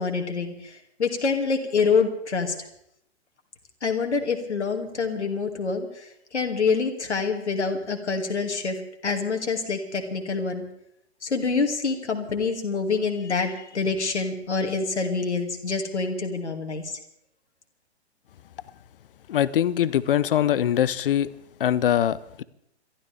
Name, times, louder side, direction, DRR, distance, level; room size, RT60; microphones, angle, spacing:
voice 1, 0.0-2.5 3.8-6.1 6.3-8.8 9.0-10.6 11.2-16.9, left 4 dB, 75° left, 4 dB, 2.6 m, -26 dB
voice 2, 19.3-21.3 21.6-22.4, left 10 dB, 50° left, 19 dB, 0.8 m, -22 dB
29.5 x 13.0 x 3.5 m, 0.77 s
figure-of-eight pair, 120°, 35 cm